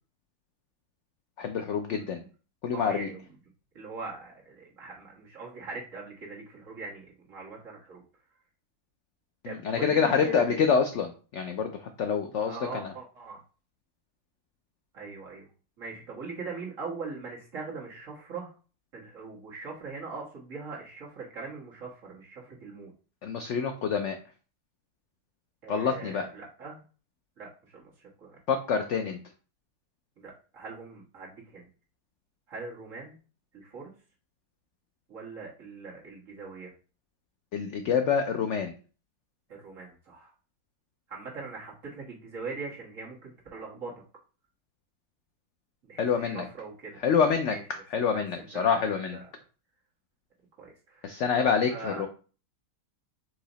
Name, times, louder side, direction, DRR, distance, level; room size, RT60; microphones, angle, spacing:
voice 1, 1.4-2.2 2.6-3.1 9.4-12.9 23.2-24.2 25.7-26.3 28.5-29.2 37.5-38.7 46.0-46.5 47.0-49.2 51.0-52.1, left 6 dB, 75° left, 6 dB, 0.6 m, -27 dB
voice 2, 2.7-3.2 3.8-8.0 9.4-10.6 12.5-13.4 14.9-15.5 15.8-18.5 18.9-22.9 25.6-26.8 27.4-28.4 30.2-31.7 32.5-33.2 33.5-33.9 35.1-36.7 39.5-40.3 41.1-43.9 45.8-47.0 47.5-47.6 48.0-49.2 50.6-52.0, right 4 dB, 50° right, -4 dB, 1.8 m, -41 dB
4.8 x 2.8 x 3.9 m, 0.37 s
omnidirectional pair, 1.8 m